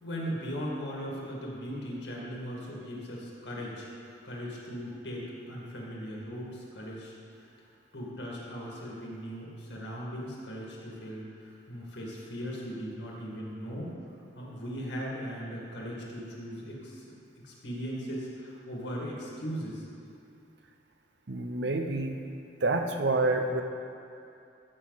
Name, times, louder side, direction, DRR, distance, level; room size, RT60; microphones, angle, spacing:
voice 1, 0.0-3.9 4.2-7.1 7.9-13.9 14.3-17.2 17.4-19.8, equal, 80° left, -3 dB, 2.1 m, -38 dB
voice 2, 21.3-22.2 22.6-23.6, right 2 dB, 75° right, 5 dB, 0.8 m, -28 dB
14.0 x 6.4 x 4.1 m, 2.6 s
head